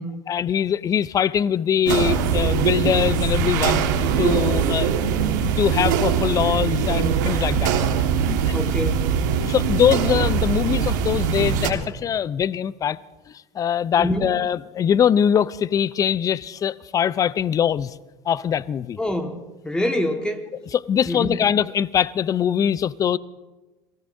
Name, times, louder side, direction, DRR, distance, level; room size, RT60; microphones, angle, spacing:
voice 1, 0.3-3.8 4.2-4.9 5.6-7.7 8.3-8.5 9.4-13.0 13.5-17.9 18.3-19.0 20.7-23.2, left 9 dB, 40° left, 0.5 m, -22 dB
sound 1, 1.9-11.7, right 7 dB, 80° right, 1.5 m, -22 dB
voice 2, 8.5-9.1 14.0-14.3 19.0-20.4 21.1-21.4, left 1 dB, 10° left, 1.5 m, -26 dB
27.5 x 18.5 x 2.6 m
hypercardioid pair, 80°, 10 cm